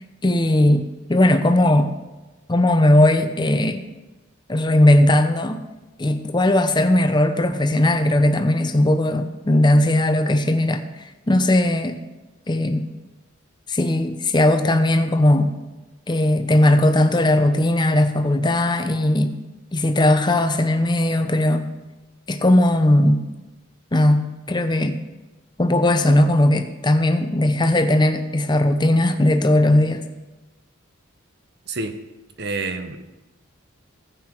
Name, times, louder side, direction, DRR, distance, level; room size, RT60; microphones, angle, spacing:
voice 1, 0.2-0.8 1.1-1.9 2.5-3.8 4.5-5.6 6.0-10.8 11.3-11.9 12.5-12.8 13.7-15.5 16.1-19.3 19.7-21.7 22.3-23.2 23.9-25.0 25.6-30.0, left 1 dB, 20° left, 8 dB, 0.6 m, -18 dB
voice 2, 31.7-32.0 32.4-33.0, right 3 dB, 50° right, 8 dB, 0.8 m, -28 dB
16.0 x 5.7 x 4.4 m, 1.1 s
head